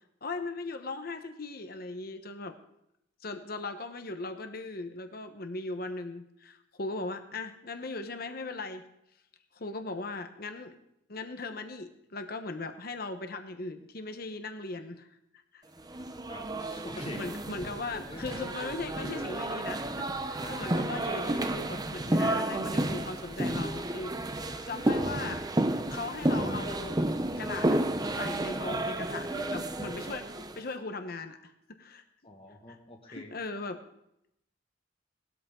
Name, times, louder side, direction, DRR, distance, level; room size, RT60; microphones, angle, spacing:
voice 1, 0.2-2.6 3.2-8.9 9.5-10.8 11.1-15.1 15.5-15.6 17.0-24.2 24.7-25.5 25.9-27.0 27.4-27.8 28.1-32.0 33.1-33.8, left 3 dB, 55° left, 7 dB, 1.1 m, -38 dB
sound 1, 15.9-30.6, right 1 dB, 20° right, 0.8 m, -31 dB
voice 2, 16.3-17.3 17.9-19.2 20.4-20.8 24.5-24.7 24.9-25.0 32.2-33.3, left 1 dB, 30° left, 3 dB, 1.8 m, -45 dB
19.0 x 13.0 x 3.8 m, 0.81 s
head